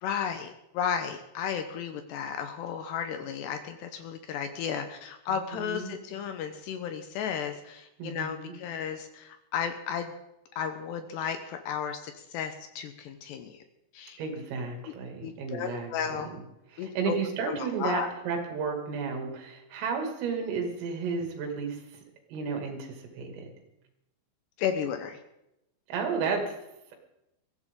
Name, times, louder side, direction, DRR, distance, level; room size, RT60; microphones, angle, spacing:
voice 1, 0.0-10.1 10.6-13.6 13.9-14.2 15.2-16.3 16.8-17.2 17.5-18.1 24.6-25.2, left 8 dB, 80° left, 7 dB, 2.5 m, -34 dB
voice 2, 5.3-6.0 8.0-8.5 14.2-16.4 16.7-21.8 22.3-23.5 25.9-26.5, right 5 dB, 80° right, 2 dB, 5.2 m, -33 dB
22.0 x 14.5 x 3.7 m, 0.88 s
omnidirectional pair, 5.8 m